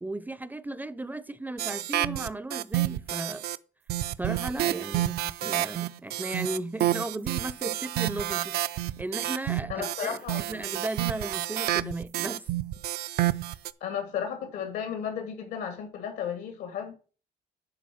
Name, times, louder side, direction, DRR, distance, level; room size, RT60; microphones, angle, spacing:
voice 1, 0.0-3.4 4.2-12.4, right 2 dB, 10° right, 0.5 m, -36 dB
sound 1, 1.6-3.6 3.9-13.7, right 14 dB, 70° right, 0.5 m, -29 dB
voice 2, 9.7-10.4 13.8-16.9, left 8 dB, 85° left, 2.4 m, -34 dB
10.5 x 3.9 x 5.9 m
cardioid pair, 110°, 17 cm